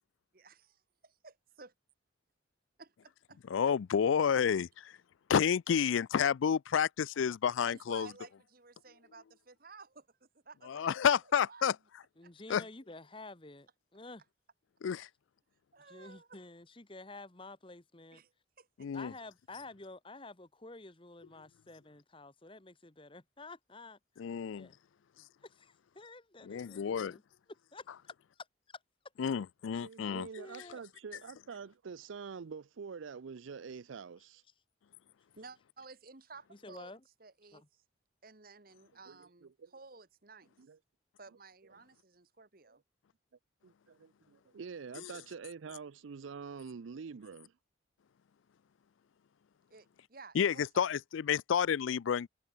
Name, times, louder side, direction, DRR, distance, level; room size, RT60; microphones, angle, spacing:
voice 1, 0.3-0.7 1.2-1.3 1.6-1.7 2.8-3.4 7.6-11.1 11.5-11.7 12.2-12.3 15.7-16.4 18.1-18.3 18.6-18.9 35.4-37.8 38.2-40.6 41.2-42.8 49.7-50.9, right 4 dB, 45° right, 1.4 m, -54 dB
voice 2, 3.5-5.0 5.3-8.1 10.6-11.8 12.5-12.6 14.8-15.1 18.8-19.1 24.2-24.7 26.4-27.2 29.2-30.3 45.0-45.1 50.3-52.3, left 7 dB, 75° left, 0.4 m, -30 dB
voice 3, 12.2-14.2 15.8-18.2 18.9-24.0 24.5-24.8 25.4-27.2 27.7-28.8 30.0-30.8 36.5-37.0 37.5-37.7, left 3 dB, 25° left, 1.3 m, -50 dB
voice 4, 29.8-34.4 39.1-39.7 40.6-40.8 43.6-47.5, right 5 dB, 75° right, 0.5 m, -46 dB
head